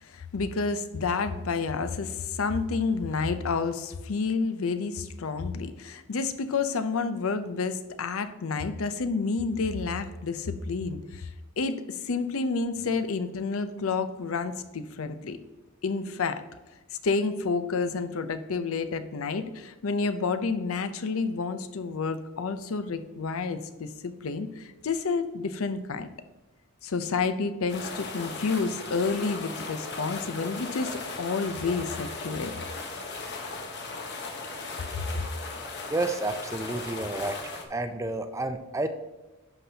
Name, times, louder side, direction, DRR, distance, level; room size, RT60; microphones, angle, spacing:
voice 1, 0.0-15.4 15.8-16.4 17.0-26.1 26.8-32.5 35.1-35.2, left 4 dB, 70° left, 10 dB, 0.6 m, -30 dB
sound 1, 27.7-37.6, left 3 dB, 50° left, 1.1 m, -37 dB
voice 2, 35.9-37.4 37.7-38.9, right 2 dB, 15° right, 8 dB, 0.4 m, -30 dB
11.0 x 5.9 x 2.8 m, 1.1 s
head